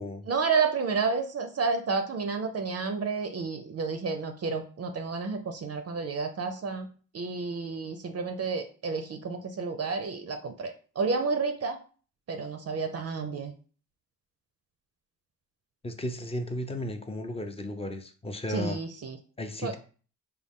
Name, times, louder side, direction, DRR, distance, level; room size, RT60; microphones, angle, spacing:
voice 1, 0.3-6.9 7.1-11.8 12.3-13.5 18.5-19.2 19.6-19.7, right 4 dB, 45° right, 6 dB, 0.5 m, -30 dB
voice 2, 15.8-18.8 19.4-19.8, left 1 dB, 15° left, 6 dB, 0.5 m, -34 dB
4.9 x 2.3 x 3.5 m, 0.40 s
wide cardioid pair, 120°, 35 cm